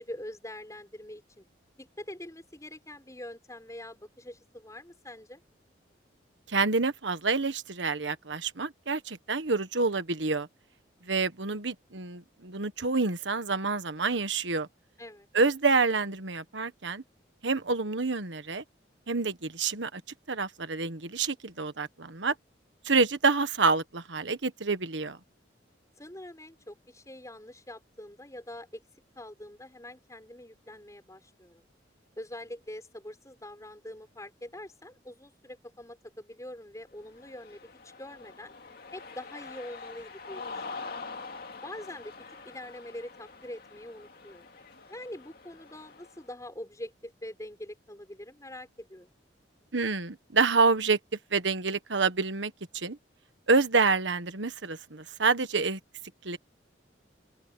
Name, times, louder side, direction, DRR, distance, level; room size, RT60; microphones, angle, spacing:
voice 1, 0.0-1.5 1.8-5.4 15.0-15.3 26.0-28.8 29.2-31.6 32.2-38.5 38.9-41.0 41.6-42.1 42.5-44.5 44.9-49.1, left 1 dB, 20° left, 5.3 m, -44 dB
voice 2, 6.5-10.5 11.1-14.7 15.3-17.0 17.4-18.6 19.1-20.0 20.3-22.3 22.8-25.2 49.7-51.0 51.3-53.0 53.5-55.8 56.2-56.4, right 4 dB, 85° right, 1.4 m, -27 dB
Cheering, 37.0-46.2, left 4 dB, 55° left, 2.3 m, -45 dB
open air
head